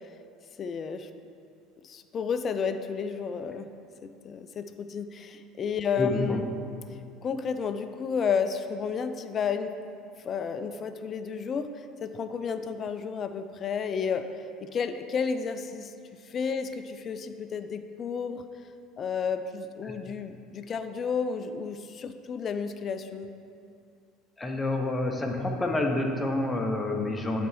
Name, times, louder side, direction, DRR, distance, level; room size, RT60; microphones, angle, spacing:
voice 1, 0.6-1.1 1.8-3.7 4.0-6.4 7.2-9.8 10.2-14.3 14.6-15.9 16.3-18.4 19.0-23.3, left 6 dB, 40° left, 9 dB, 0.4 m, -32 dB
voice 2, 6.0-6.4 19.8-20.0 24.4-27.5, left 2 dB, 15° left, 2 dB, 0.8 m, -28 dB
8.2 x 4.3 x 4.5 m, 2.4 s
figure-of-eight pair, 65°, 0 cm